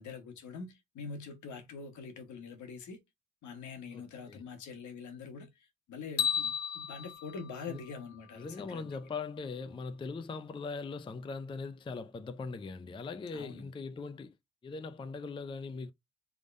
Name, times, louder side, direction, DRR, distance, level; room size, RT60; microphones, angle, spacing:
voice 1, 0.0-3.0 3.4-5.5 5.9-8.9 13.3-13.7, left 5 dB, 70° left, 1.4 m, -44 dB
voice 2, 3.9-4.4 7.7-7.8 8.4-14.4 14.6-15.9, left 4 dB, 15° left, 0.4 m, -40 dB
sound 1, 6.2-8.4, left 7 dB, 55° left, 1.2 m, -35 dB
3.5 x 3.5 x 2.5 m
cardioid pair, 90°, 30 cm